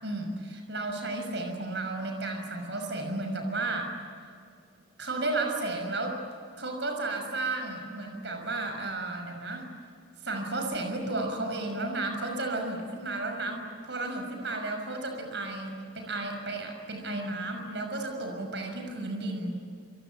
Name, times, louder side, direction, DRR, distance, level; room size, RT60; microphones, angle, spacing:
voice 1, 0.0-3.9 5.0-6.2 6.6-9.6 10.2-19.6, right 2 dB, 60° right, 4 dB, 6.1 m, -33 dB
28.0 x 23.0 x 9.2 m, 2.3 s
head